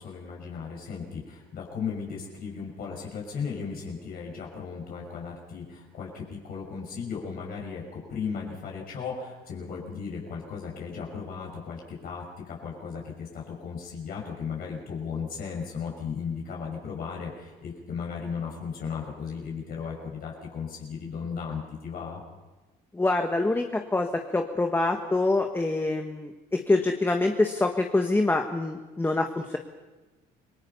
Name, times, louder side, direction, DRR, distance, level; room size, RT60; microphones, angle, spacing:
voice 1, 0.0-22.2, left 6 dB, 60° left, -1 dB, 5.9 m, -36 dB
voice 2, 22.9-24.1 24.3-29.6, left 2 dB, 15° left, 4 dB, 1.5 m, -25 dB
28.0 x 19.5 x 5.6 m, 1.2 s
cardioid pair, 110°, 17 cm